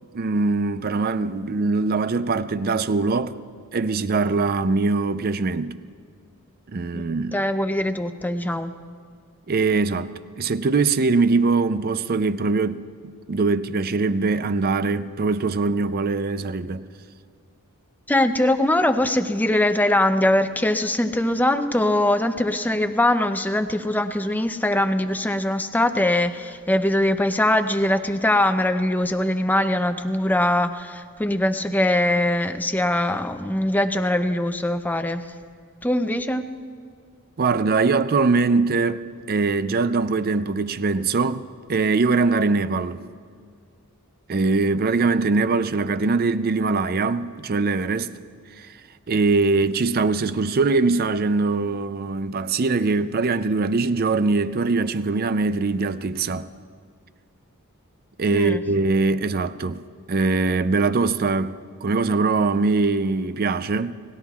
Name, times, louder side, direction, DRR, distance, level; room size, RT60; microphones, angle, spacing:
voice 1, 0.1-3.3 3.7-5.8 6.7-7.4 9.5-10.1 10.4-16.8 37.4-41.4 41.7-43.0 44.3-48.1 48.6-48.7 49.1-56.5 58.2-59.8 60.1-61.5 61.8-63.9, right 3 dB, 45° right, 0.5 m, -22 dB
voice 2, 6.9-8.7 18.1-35.2 35.8-36.4 58.3-58.6, left 1 dB, 10° left, 0.5 m, -22 dB
28.5 x 19.0 x 2.4 m
head